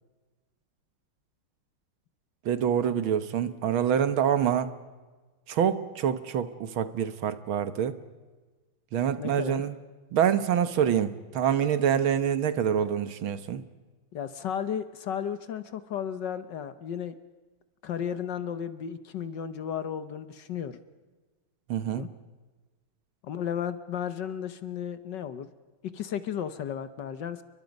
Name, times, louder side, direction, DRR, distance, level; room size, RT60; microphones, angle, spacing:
voice 1, 2.5-4.7 5.5-8.0 8.9-9.7 10.1-13.6 21.7-22.1, right 8 dB, 70° right, 12 dB, 1.9 m, -26 dB
voice 2, 9.2-9.6 14.1-17.2 17.8-20.8 22.0-22.1 23.2-25.5 25.8-27.4, left 8 dB, 60° left, 12 dB, 1.4 m, -34 dB
30.0 x 23.0 x 5.3 m, 1.3 s
omnidirectional pair, 2.4 m